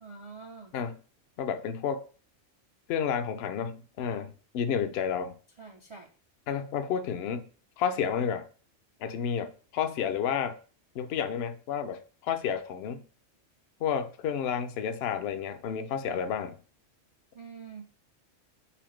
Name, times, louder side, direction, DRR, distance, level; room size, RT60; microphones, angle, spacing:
voice 1, 0.0-0.7 5.6-6.1 6.9-7.0 17.3-17.9, right 5 dB, 45° right, 0.4 m, -46 dB
voice 2, 1.4-2.1 2.9-5.4 6.5-7.4 7.8-8.5 9.0-10.6 10.9-13.0 13.8-16.6, left 7 dB, 65° left, 0.7 m, -31 dB
4.2 x 4.1 x 3.1 m
omnidirectional pair, 1.3 m